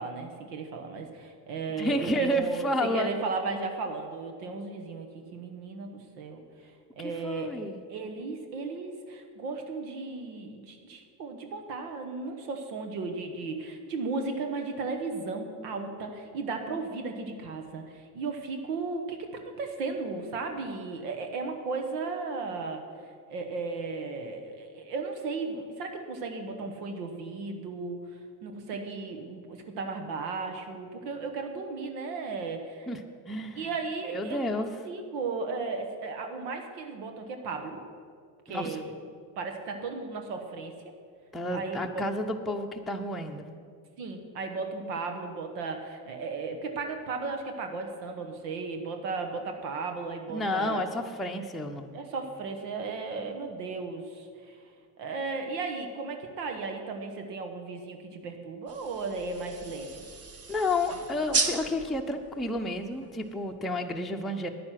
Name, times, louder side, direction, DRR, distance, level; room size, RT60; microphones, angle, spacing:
voice 1, 0.0-19.3 19.6-22.8 23.3-32.9 33.5-34.5 34.8-37.8 38.5-38.9 39.4-40.7 41.5-41.8 44.0-50.8 51.9-54.6 55.0-60.0, right 4 dB, 90° right, 4 dB, 1.3 m, -35 dB
voice 2, 1.8-3.1 7.0-7.8 32.9-33.0 33.3-33.7 34.0-34.7 38.5-38.8 41.3-43.4 50.3-52.0 60.5-64.5, left 1 dB, ahead, 1 dB, 0.6 m, -30 dB
sound 1, 58.7-63.5, right 4 dB, 30° right, 1.1 m, -35 dB
9.8 x 9.6 x 5.9 m, 2.1 s
supercardioid pair, 90°, 47 cm